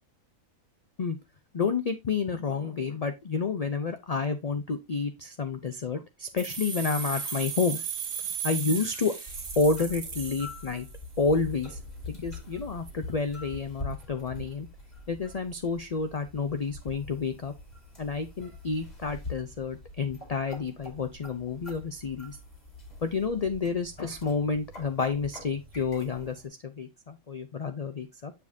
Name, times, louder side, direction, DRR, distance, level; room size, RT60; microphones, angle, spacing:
voice 1, 1.5-7.8 8.4-9.2 9.6-10.9 11.2-11.8 12.1-14.7 15.1-17.5 18.0-22.4 23.0-28.3, left 4 dB, 50° left, 8 dB, 0.4 m, -30 dB
sound 1, 6.4-11.2, right 7 dB, 55° right, 1.8 m, -36 dB
sound 2, 9.3-26.5, left 2 dB, 30° left, 2.4 m, -44 dB
7.4 x 6.7 x 2.6 m, 0.22 s
omnidirectional pair, 1.5 m